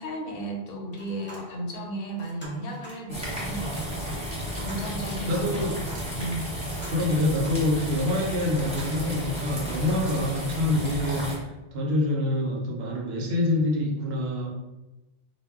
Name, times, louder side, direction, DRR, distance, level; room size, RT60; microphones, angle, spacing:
voice 1, 0.0-4.2 4.6-6.5, right 1 dB, 70° left, 1 dB, 0.7 m, -35 dB
sound 1, 0.9-1.8 2.1-3.1 4.0-7.8 8.3-10.0 10.5-10.6 11.0-11.1, right 2 dB, 15° left, 0.4 m, -48 dB
sound 2, 3.1-11.4, equal, 5° right, 0.8 m, -33 dB
sound 3, 4.1-5.4 5.7-7.4 7.8-11.1, right 2 dB, 40° right, 0.6 m, -48 dB
voice 2, 5.3-5.8 6.9-11.4 11.7-14.5, left 2 dB, 75° right, -1 dB, 0.8 m, -26 dB
2.1 x 2.0 x 3.4 m, 1.0 s
omnidirectional pair, 1.1 m